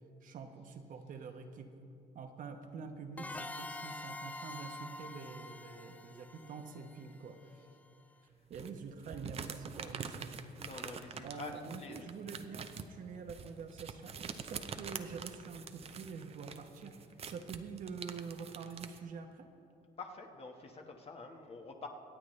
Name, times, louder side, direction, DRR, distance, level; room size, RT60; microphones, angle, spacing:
voice 1, 0.2-1.7 2.1-7.7 8.5-10.4 11.2-14.1 14.4-19.5, right 5 dB, 50° right, 5 dB, 1.1 m, -46 dB
sound 1, 3.2-7.7, left 2 dB, 10° left, 0.3 m, -46 dB
sound 2, 8.5-19.0, right 6 dB, 35° right, 0.7 m, -46 dB
voice 2, 10.6-12.1 20.0-21.9, left 3 dB, 35° left, 3 dB, 1.4 m, -47 dB
25.0 x 8.4 x 3.2 m, 2.7 s
cardioid pair, 110°, 17 cm